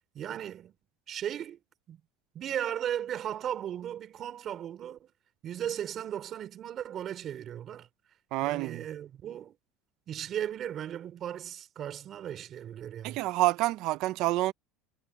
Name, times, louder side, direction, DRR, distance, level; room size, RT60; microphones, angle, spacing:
voice 1, 0.1-0.7 1.1-1.6 1.9-2.0 2.3-5.1 5.4-7.9 8.4-9.5 10.1-13.2, right 10 dB, 35° right, 4.6 m, -36 dB
voice 2, 8.3-8.8 13.0-14.5, right 18 dB, 55° right, 0.9 m, -28 dB
supercardioid pair, 140°, 0 cm